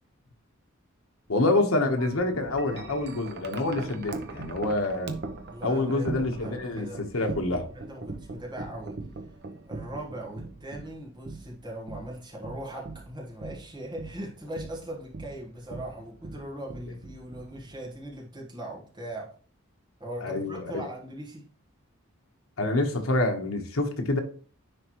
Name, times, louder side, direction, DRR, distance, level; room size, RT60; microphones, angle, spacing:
voice 1, 1.3-5.1 5.6-7.6 20.2-20.8 22.6-24.2, left 2 dB, 85° left, 4 dB, 1.2 m, -27 dB
Wind chime, 2.0-18.2, right 3 dB, 55° right, 0.8 m, -41 dB
voice 2, 5.5-7.2 7.7-9.0 9.6-19.3 20.0-21.5, right 1 dB, 20° right, -2 dB, 1.4 m, -40 dB
10.0 x 3.5 x 3.0 m, 0.42 s
head